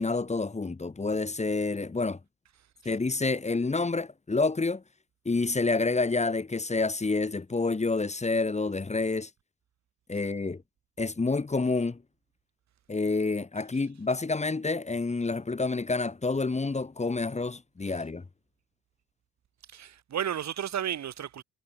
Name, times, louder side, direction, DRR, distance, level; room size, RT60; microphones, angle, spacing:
voice 1, 0.0-2.2 2.8-4.8 5.2-9.3 10.1-10.6 11.0-12.0 12.9-18.2, left 3 dB, 20° left, 3.1 m, -28 dB
voice 2, 19.7-21.4, right 9 dB, 65° right, 7.8 m, -33 dB
cardioid pair, 90°, 30 cm